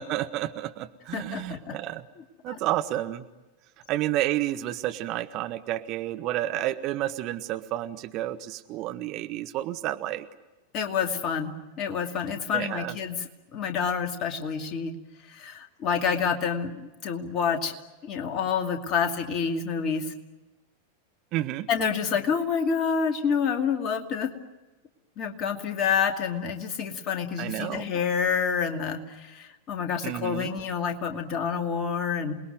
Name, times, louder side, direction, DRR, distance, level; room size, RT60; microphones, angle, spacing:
voice 1, 0.0-2.1 2.4-3.3 3.9-10.3 12.5-12.9 21.3-21.7 27.4-27.9 30.0-30.5, right 14 dB, 40° right, 10 dB, 1.1 m, -30 dB
voice 2, 1.1-1.8 2.5-2.6 10.7-13.2 13.5-15.0 15.3-17.7 18.0-20.1 21.7-24.3 25.2-32.4, left 6 dB, 35° left, 4 dB, 2.5 m, -28 dB
28.0 x 20.5 x 9.4 m, 1.1 s
figure-of-eight pair, 90°, 0 cm